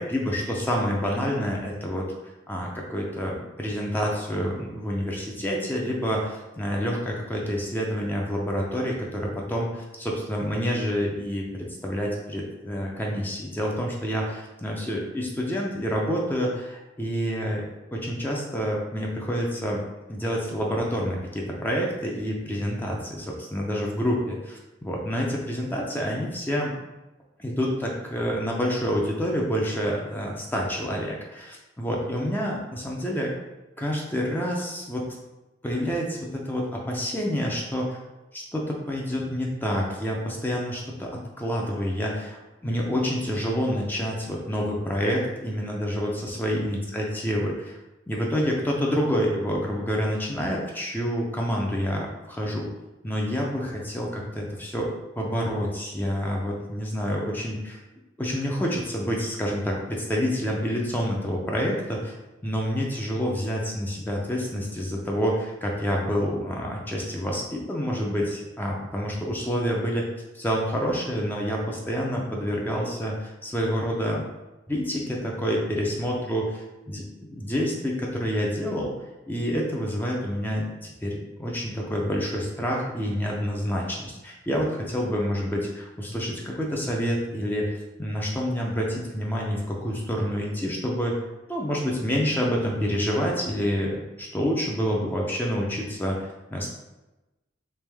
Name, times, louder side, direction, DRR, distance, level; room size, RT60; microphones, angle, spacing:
voice 1, 0.0-2.1 2.5-19.8 20.1-26.7 27.4-33.3 33.8-35.0 35.6-38.0 38.3-41.1 41.4-47.8 48.1-52.7 53.0-54.9 55.2-57.8 58.2-62.2 62.4-70.0 70.3-74.2 74.7-78.9 79.3-87.7 88.0-91.1 91.5-96.7, equal, 10° left, -2 dB, 0.5 m, -28 dB
3.3 x 3.0 x 3.3 m, 1.0 s
head